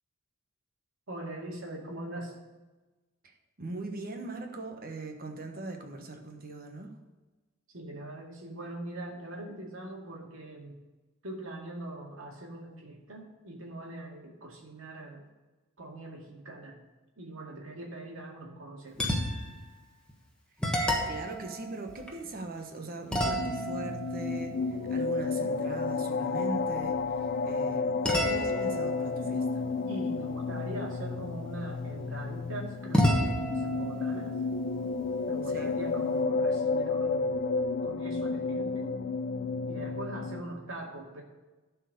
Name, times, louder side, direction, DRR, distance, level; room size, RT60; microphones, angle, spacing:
voice 1, 1.1-2.4 7.7-10.8 11.2-15.2 15.8-16.8 17.2-19.0 29.9-34.4 35.2-37.4 37.8-39.0 39.7-41.2, right 1 dB, 75° right, 0 dB, 2.1 m, -42 dB
voice 2, 3.2-6.9 21.1-29.6 35.4-35.8, right 2 dB, 45° right, 4 dB, 1.2 m, -40 dB
sound 1, 18.9-19.6 20.1-20.2 20.6-22.6 23.1-25.8 28.0-30.7 32.9-35.5, equal, 5° left, 1.3 m, -32 dB
sound 2, 23.1-40.4, left 4 dB, 50° left, 0.4 m, -31 dB
11.5 x 4.7 x 6.7 m, 1.2 s
head